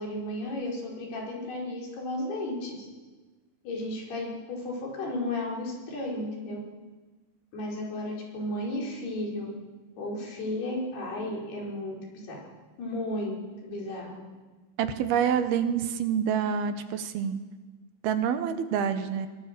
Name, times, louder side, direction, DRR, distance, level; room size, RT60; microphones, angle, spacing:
voice 1, 0.0-2.9 3.6-6.6 7.5-9.5 10.0-12.4 12.8-14.2, left 1 dB, 85° left, -2 dB, 6.8 m, -34 dB
voice 2, 14.8-17.4 18.0-19.3, right 8 dB, 80° right, 9 dB, 3.1 m, -27 dB
24.0 x 19.0 x 6.8 m, 1.3 s
omnidirectional pair, 4.5 m